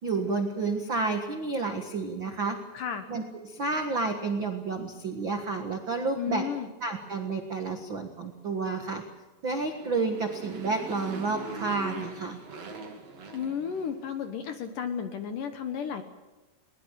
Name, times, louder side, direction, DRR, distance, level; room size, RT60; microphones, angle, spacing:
voice 1, 0.0-2.6 3.1-6.5 6.8-9.0 9.4-12.4, right 3 dB, 80° right, 4 dB, 1.1 m, -30 dB
voice 2, 2.7-3.1 6.2-6.7 13.3-16.0, left 7 dB, 65° left, 7 dB, 2.2 m, -33 dB
Motorcycle, 9.6-14.2, right 3 dB, 40° right, 3.3 m, -41 dB
21.5 x 20.5 x 7.5 m, 1.2 s
omnidirectional pair, 5.1 m